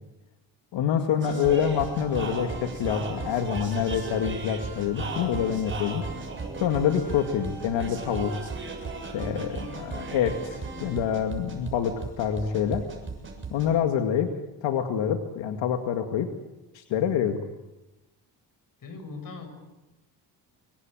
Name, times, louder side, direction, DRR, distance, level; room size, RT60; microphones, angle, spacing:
voice 1, 0.7-6.0 6.6-8.5 9.1-12.9 13.5-14.3 14.6-16.3 16.7-17.4, left 8 dB, 85° left, 5 dB, 2.2 m, -26 dB
sound 1, 1.2-13.7, right 3 dB, 25° right, 7.5 m, -36 dB
voice 2, 18.8-19.5, left 4 dB, 50° left, 7 dB, 7.4 m, -39 dB
26.0 x 22.0 x 9.2 m, 1.0 s
cardioid pair, 115°, 43 cm